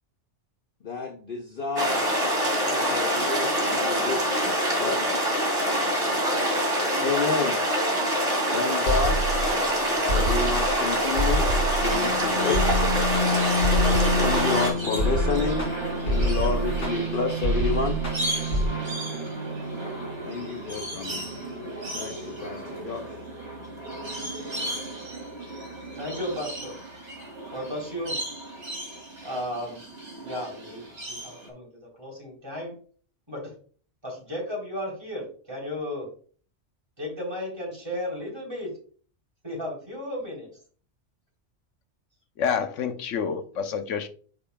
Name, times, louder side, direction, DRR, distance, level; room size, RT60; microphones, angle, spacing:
voice 1, 0.8-2.1 2.6-4.2 4.7-5.2 7.0-7.6 8.5-9.2 10.1-12.7 14.2-15.7 16.0-18.0 20.2-21.3 21.9-23.1, left 4 dB, 55° left, 0.8 m, -30 dB
sound 1, 1.8-14.7, equal, 45° right, 2.8 m, -25 dB
sound 2, 8.9-18.7, right 1 dB, 70° left, 3.1 m, -27 dB
sound 3, 11.9-31.5, equal, 65° right, 3.0 m, -32 dB
voice 2, 26.0-26.8 27.5-28.3 29.2-29.8 30.2-32.8 33.3-33.6 34.0-36.1 37.0-38.8 39.4-40.5, left 1 dB, 20° right, 3.5 m, -34 dB
voice 3, 42.4-44.1, left 6 dB, 85° left, 1.1 m, -28 dB
9.9 x 5.1 x 2.3 m
omnidirectional pair, 1.3 m